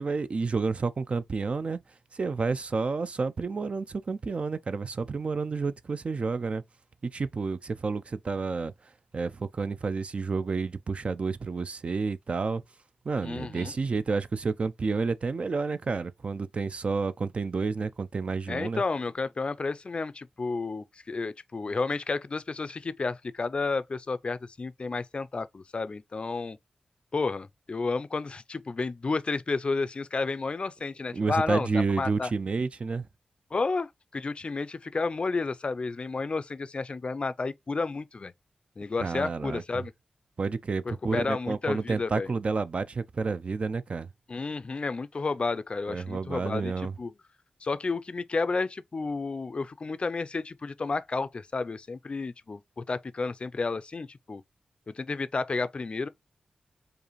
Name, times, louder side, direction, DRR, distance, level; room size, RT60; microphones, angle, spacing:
voice 1, 0.0-1.8 2.1-6.6 7.0-8.7 9.1-12.6 13.0-18.8 31.1-33.1 39.0-39.8 40.4-44.1 45.9-46.9, right 4 dB, 50° right, 0.3 m, -30 dB
voice 2, 13.2-13.7 18.5-26.6 27.1-32.3 33.5-38.3 38.8-39.9 40.9-42.3 44.3-46.7 47.0-47.1 47.6-54.4 54.9-56.1, left 3 dB, 45° left, 0.4 m, -31 dB
4.8 x 2.5 x 3.0 m
cardioid pair, 65°, 3 cm